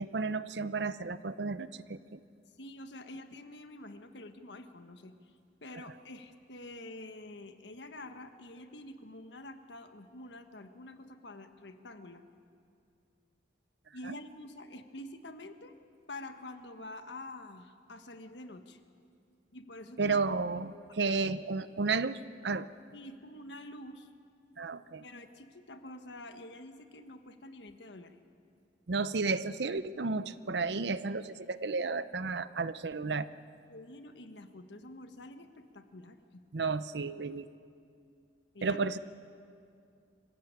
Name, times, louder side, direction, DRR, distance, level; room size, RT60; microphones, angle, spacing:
voice 1, 0.0-2.2 14.0-14.2 20.0-22.7 24.6-25.0 28.9-33.3 36.5-37.5 38.6-39.0, right 4 dB, 70° right, 14 dB, 0.7 m, -32 dB
voice 2, 2.6-5.3 5.6-12.2 13.9-15.8 16.1-18.8 19.5-20.2 20.9-21.4 22.9-24.1 25.0-28.2 33.7-36.4 38.5-38.8, left 1 dB, 80° left, 8 dB, 1.4 m, -47 dB
25.5 x 15.5 x 8.8 m, 2.4 s
head